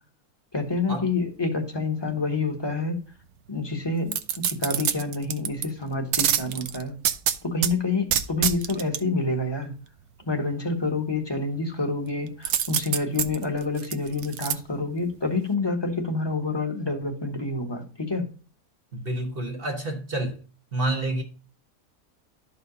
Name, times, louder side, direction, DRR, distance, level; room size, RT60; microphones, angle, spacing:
voice 1, 0.5-3.0 3.5-4.2 4.4-6.9 7.4-9.7 10.2-18.3, left 3 dB, 15° left, 1.6 m, -28 dB
sound 1, 4.1-5.7 6.1-7.7 8.1-9.0 12.4-14.5 15.0-15.1, right 9 dB, 70° right, 1.1 m, -26 dB
voice 2, 18.9-20.4 20.7-21.2, right 2 dB, 40° right, 1.4 m, -28 dB
13.0 x 4.9 x 2.7 m
omnidirectional pair, 1.6 m